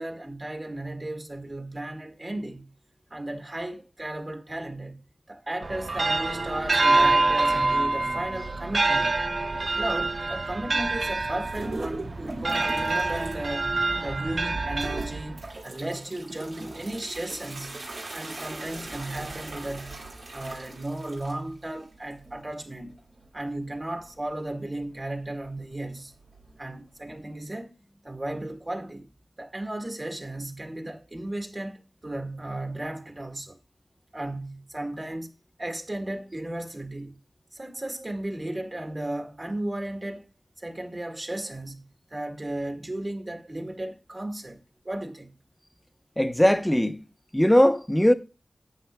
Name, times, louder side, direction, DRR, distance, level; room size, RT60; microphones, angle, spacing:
voice 1, 0.0-2.7 3.1-5.0 5.3-9.2 9.8-13.7 14.0-17.8 18.1-20.0 20.3-22.9 23.3-26.1 26.6-27.7 28.0-29.1 29.4-33.6 34.1-35.3 35.6-37.2 37.5-40.3 40.6-41.9 42.1-44.6 44.9-45.3, right 1 dB, 35° right, 1.8 m, -35 dB
sound 1, 5.6-15.5, right 2 dB, 55° right, 0.6 m, -26 dB
sound 2, 11.4-13.4 13.8-14.3 14.7-27.4, right 2 dB, 85° right, 2.7 m, -41 dB
voice 2, 46.2-47.0 47.3-48.1, equal, 10° left, 0.8 m, -20 dB
11.5 x 8.2 x 2.2 m
wide cardioid pair, 65°, 0 cm